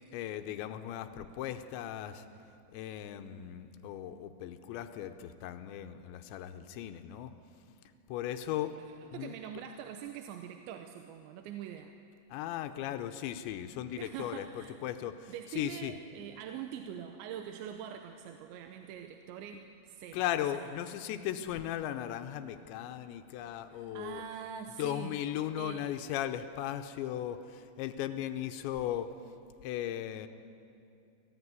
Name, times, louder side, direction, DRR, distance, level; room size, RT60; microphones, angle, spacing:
voice 1, 0.1-2.2 2.7-7.3 8.1-8.7 9.1-9.3 12.3-15.9 20.1-24.2 24.8-29.1 29.6-30.3, left 11 dB, 85° left, 9 dB, 3.0 m, -37 dB
voice 2, 9.1-11.9 14.0-14.8 15.3-20.2 20.5-20.7 23.7-25.1 25.6-25.9, right 9 dB, 80° right, 6 dB, 3.2 m, -44 dB
24.5 x 16.5 x 9.6 m, 2.7 s
omnidirectional pair, 5.3 m